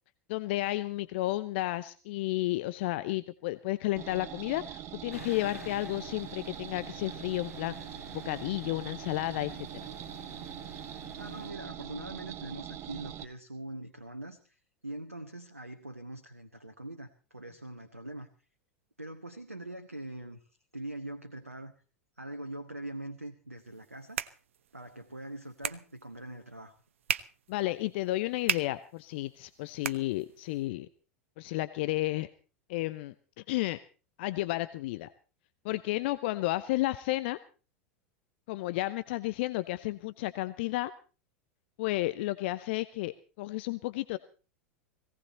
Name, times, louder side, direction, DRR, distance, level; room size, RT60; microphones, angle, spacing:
voice 1, 0.3-7.7 8.2-9.7 27.5-30.9 31.4-32.3 32.7-33.8 34.2-35.1 35.6-37.4 38.5-40.9 41.8-44.2, left 17 dB, 50° left, 14 dB, 0.7 m, -32 dB
sound 1, 4.0-13.2, right 11 dB, 35° right, 1.3 m, -43 dB
sound 2, 5.1-11.5, left 4 dB, 80° left, 1.4 m, -50 dB
voice 2, 11.2-18.3 19.0-20.4 20.7-21.7 22.2-24.2 24.7-26.7, right 1 dB, 85° right, 10 dB, 1.1 m, -43 dB
sound 3, 23.6-30.7, right 9 dB, 65° right, 0.8 m, -39 dB
18.5 x 17.5 x 4.2 m, 0.37 s
figure-of-eight pair, 85°, 7 cm